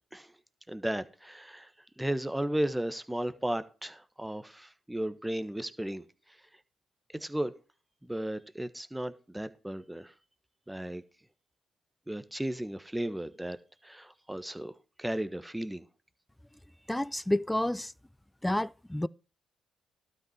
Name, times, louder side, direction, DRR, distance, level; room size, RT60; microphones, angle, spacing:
voice 1, 0.7-1.7 2.0-6.0 7.1-7.5 8.0-10.1 10.7-11.0 12.1-13.6 13.8-14.7 15.0-15.8, right 1 dB, 10° right, 1.3 m, -34 dB
voice 2, 16.9-17.9 18.4-19.1, left 1 dB, 10° left, 0.4 m, -29 dB
12.5 x 5.4 x 5.9 m
hypercardioid pair, 50°, 0 cm